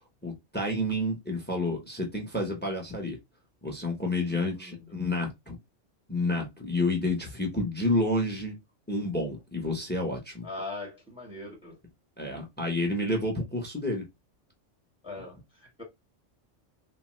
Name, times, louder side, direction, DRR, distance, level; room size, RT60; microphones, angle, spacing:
voice 1, 0.2-3.2 3.6-5.6 6.1-8.6 8.9-10.5 12.2-14.0, left 1 dB, 15° left, 0.5 m, -29 dB
voice 2, 4.3-4.9 10.4-11.8 15.0-15.8, left 2 dB, 5° right, 0.9 m, -41 dB
3.0 x 2.0 x 2.9 m
omnidirectional pair, 1.2 m